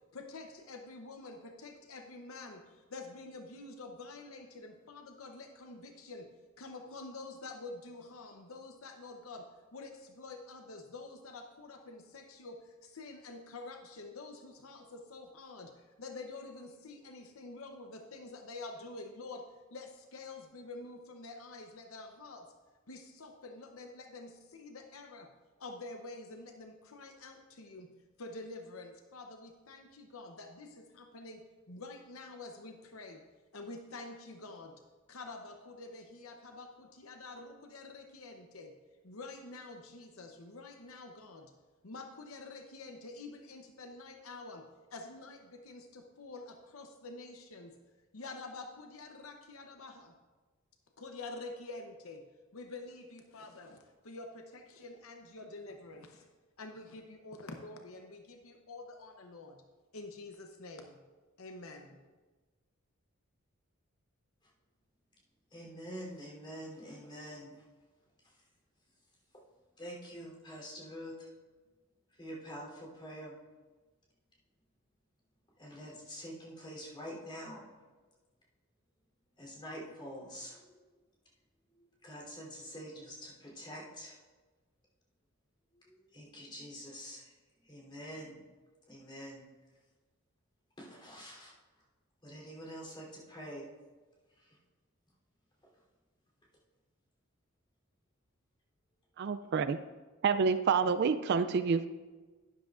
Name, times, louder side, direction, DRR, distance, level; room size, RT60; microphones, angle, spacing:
voice 1, 0.1-6.3 6.6-19.4 19.7-22.5 22.9-25.3 25.6-27.9 28.2-33.2 33.5-34.7 35.1-38.7 39.0-41.5 41.8-44.6 44.9-47.7 48.1-50.1 51.0-52.2 52.5-56.3 56.6-59.6 59.9-61.0 61.4-62.0, left 3 dB, 70° left, 4 dB, 0.8 m, -47 dB
voice 2, 65.5-67.6 69.8-71.3 72.2-73.3 75.6-77.6 79.4-80.9 81.7-84.2 85.7-87.3 87.6-88.4 88.9-89.4 90.8-91.5 92.2-93.6 94.5-94.6, equal, 25° left, -4 dB, 3.3 m, -46 dB
voice 3, 99.2-99.8 100.2-101.9, right 5 dB, 50° right, 12 dB, 0.3 m, -28 dB
12.0 x 10.5 x 2.5 m, 1.3 s
head